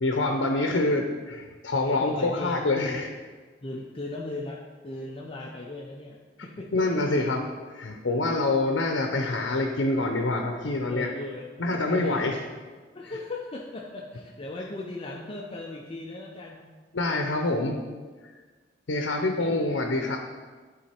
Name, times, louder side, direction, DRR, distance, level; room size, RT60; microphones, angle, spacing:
voice 1, 0.0-3.1 6.7-7.4 7.7-11.1 11.6-12.4 16.9-17.8 18.9-20.2, left 2 dB, 80° left, 3 dB, 0.7 m, -26 dB
voice 2, 1.7-3.0 3.6-7.0 8.1-8.2 10.9-12.4 12.9-16.7 19.2-19.5, left 2 dB, 30° left, -1 dB, 0.6 m, -38 dB
10.5 x 3.9 x 4.4 m, 1.4 s
head